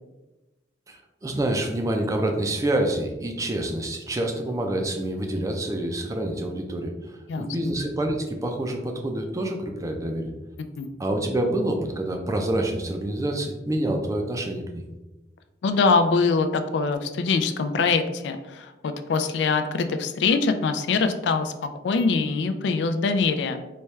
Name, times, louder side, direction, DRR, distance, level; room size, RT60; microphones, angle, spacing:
voice 1, 0.9-10.3 11.0-14.8, right 1 dB, 20° right, 2 dB, 0.4 m, -27 dB
voice 2, 7.3-7.7 10.6-10.9 15.6-23.6, left 4 dB, 70° left, 8 dB, 0.3 m, -23 dB
4.2 x 2.3 x 3.2 m, 1.1 s
head